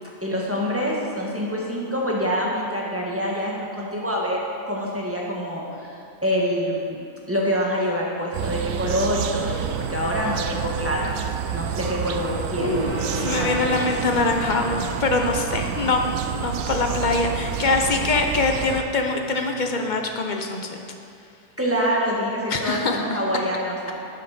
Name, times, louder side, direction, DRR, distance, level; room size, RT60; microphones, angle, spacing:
voice 1, 0.2-7.0 7.3-11.0 11.5-12.8 13.4-13.8 14.8-14.9 21.6-23.9, equal, 10° right, -4 dB, 1.5 m, -26 dB
sound 1, 8.3-18.8, right 9 dB, 90° right, 1.1 m, -29 dB
Gong, 12.6-20.0, right 1 dB, 60° right, 1.9 m, -36 dB
voice 2, 13.1-16.0 16.3-20.8 22.5-23.2, left 3 dB, 40° left, 3 dB, 0.7 m, -23 dB
11.5 x 7.6 x 5.1 m, 2.5 s
omnidirectional pair, 1.5 m